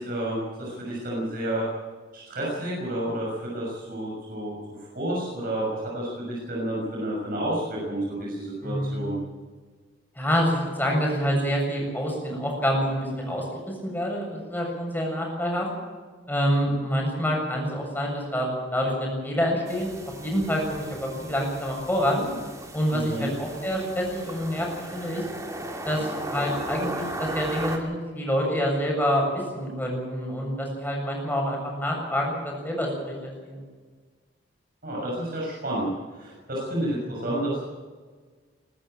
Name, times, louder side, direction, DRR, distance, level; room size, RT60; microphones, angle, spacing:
voice 1, 0.0-1.7 2.1-9.2 22.9-23.3 34.8-37.6, right 1 dB, 55° right, -4 dB, 6.4 m, -30 dB
voice 2, 8.6-9.1 10.2-15.7 16.3-19.9 20.2-22.2 22.7-25.2 25.8-33.6 37.1-37.2, equal, 10° left, -1 dB, 7.3 m, -27 dB
sound 1, 19.7-27.8, right 1 dB, 20° right, 2.6 m, -37 dB
21.5 x 13.5 x 9.0 m, 1.5 s
head